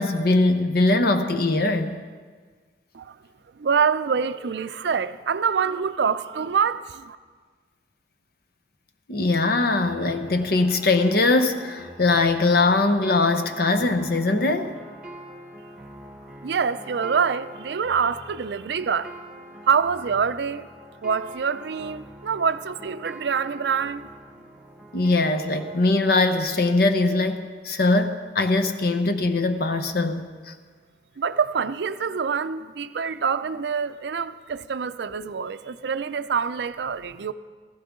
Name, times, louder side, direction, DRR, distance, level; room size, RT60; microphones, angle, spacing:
voice 1, 0.0-2.0 9.1-14.7 24.9-30.5, left 2 dB, 60° left, 0.8 m, -21 dB
voice 2, 3.6-7.2 16.4-19.1 19.7-20.7 21.0-24.1 31.2-37.3, right 6 dB, 70° right, 0.4 m, -25 dB
sound 1, 9.8-25.8, right 1 dB, 5° right, 1.3 m, -44 dB
16.0 x 15.0 x 3.7 m
head